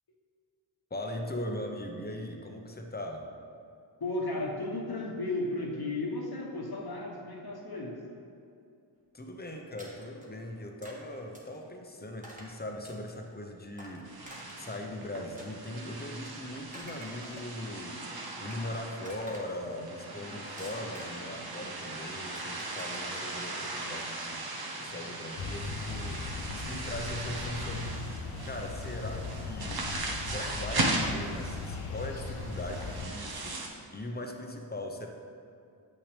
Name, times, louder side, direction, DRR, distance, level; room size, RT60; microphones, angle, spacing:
voice 1, 0.9-3.2 9.1-14.3 14.6-28.0 28.4-35.1, left 1 dB, 20° left, 2 dB, 0.9 m, -40 dB
voice 2, 4.0-8.0, left 2 dB, 50° left, -1 dB, 1.3 m, -34 dB
sound 1, 9.8-10.3 10.8-11.0 11.3-11.6 12.2-12.5 12.9-13.3 13.8-14.8 15.4-16.1 16.6-17.7 18.1-18.7 19.1-19.8 20.6-21.4 22.4-23.0, right 1 dB, 15° right, 1.6 m, -48 dB
sound 2, 14.0-33.7, right 2 dB, 50° right, 1.0 m, -38 dB
sound 3, 25.4-33.1, left 4 dB, 90° left, 0.7 m, -38 dB
7.8 x 6.0 x 3.4 m, 2.5 s
cardioid pair, 50°, 49 cm